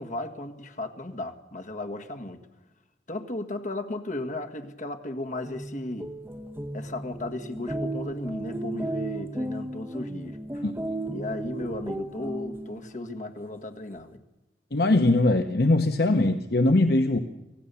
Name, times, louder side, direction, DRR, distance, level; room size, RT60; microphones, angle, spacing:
voice 1, 0.0-2.4 3.1-6.1 6.7-10.6 11.1-14.2, left 1 dB, 45° left, 6 dB, 1.7 m, -35 dB
sound 1, 5.3-12.9, right 1 dB, 15° right, 1.0 m, -35 dB
voice 2, 14.7-17.2, left 2 dB, 60° left, 6 dB, 0.9 m, -21 dB
25.0 x 16.5 x 7.0 m, 1.0 s
head